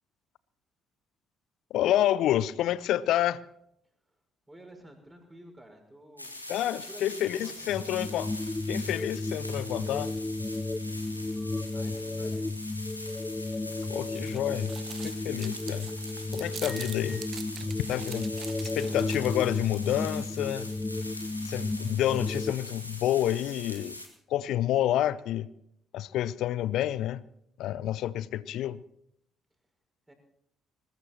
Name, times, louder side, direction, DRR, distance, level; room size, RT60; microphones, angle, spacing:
voice 1, 1.7-3.4 6.5-8.3 8.7-10.1 13.9-14.7 15.0-15.9 16.3-17.2 17.6-18.3 18.6-20.7 21.4-24.0 24.3-25.5 25.9-27.3 27.6-28.8, left 12 dB, 60° left, 0.6 m, -29 dB
voice 2, 4.5-6.4 6.9-7.5 11.7-12.6 18.8-19.1 30.1-30.2, right 1 dB, 15° right, 5.8 m, -50 dB
sound 1, 6.2-24.1, left 1 dB, 90° left, 1.5 m, -43 dB
sound 2, 7.7-22.5, left 2 dB, 20° left, 0.6 m, -34 dB
sound 3, 13.8-19.5, right 8 dB, 45° right, 0.6 m, -45 dB
21.0 x 19.5 x 3.1 m
figure-of-eight pair, 45°, 0 cm